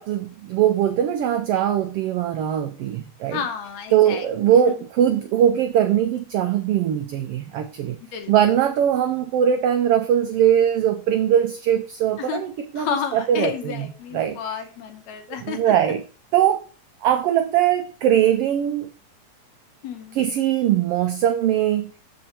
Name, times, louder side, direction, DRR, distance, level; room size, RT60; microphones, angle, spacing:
voice 1, 0.0-3.4 3.9-8.0 8.3-13.9 14.1-14.4 15.4-16.0 16.3-16.6 17.0-18.9 20.1-22.0, right 10 dB, 90° right, 1.3 m, -21 dB
voice 2, 3.3-4.3 4.7-4.8 8.0-8.3 12.2-12.4 12.8-15.7 19.8-20.2, left 8 dB, 75° left, 2.0 m, -31 dB
13.0 x 4.4 x 2.9 m
omnidirectional pair, 3.4 m